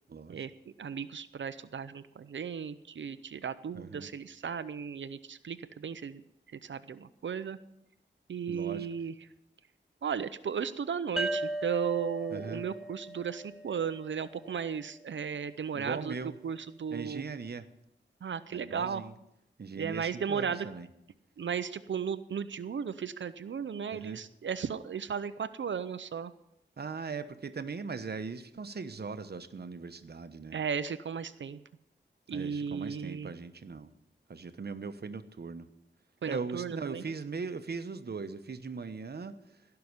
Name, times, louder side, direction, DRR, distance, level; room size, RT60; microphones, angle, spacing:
voice 1, 0.1-0.4 3.7-4.1 8.5-8.9 12.3-12.7 15.7-16.3 16.9-17.7 18.5-19.1 19.6-20.9 23.9-24.2 26.8-30.6 32.3-33.9 34.3-35.7 36.3-39.4, right 4 dB, 55° right, 10 dB, 1.0 m, -39 dB
voice 2, 0.8-6.2 6.5-7.6 8.3-9.1 10.0-16.1 16.4-17.2 18.2-19.1 19.8-20.7 21.4-26.3 30.5-31.6 32.3-33.3 36.2-37.0, right 7 dB, 75° right, 12 dB, 0.6 m, -35 dB
sound 1, 11.2-14.6, right 1 dB, 5° right, 0.7 m, -37 dB
16.5 x 5.9 x 9.6 m, 0.82 s
wide cardioid pair, 85°, 19 cm